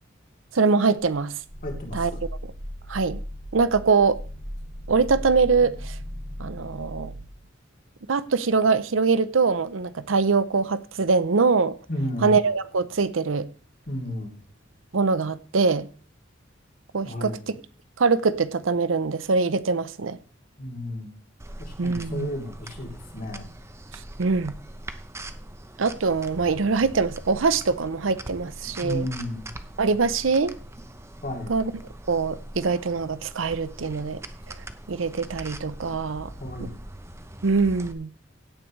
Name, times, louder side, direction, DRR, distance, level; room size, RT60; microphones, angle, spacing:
voice 1, 0.5-1.3 1.9-2.1 2.9-3.2 3.5-4.2 4.9-6.0 6.4-7.1 8.1-11.7 12.2-13.5 14.9-15.9 16.9-17.6 18.0-20.2 21.8-22.3 24.2-24.5 25.8-29.1 29.8-30.5 31.5-31.7 32.1-34.2 34.9-36.3 36.6-36.7 37.4-38.1, right 4 dB, 85° right, 0.7 m, -23 dB
Growling, 1.0-7.3, equal, 40° right, 2.2 m, -37 dB
voice 2, 1.6-2.2 11.9-12.4 13.9-14.4 17.0-17.4 20.6-21.1 21.6-23.5 28.8-29.5 31.2-31.5 36.4-36.8, left 1 dB, 50° left, 3.2 m, -33 dB
sound 1, 21.4-37.9, right 1 dB, 15° right, 0.7 m, -42 dB
16.5 x 8.7 x 3.2 m
head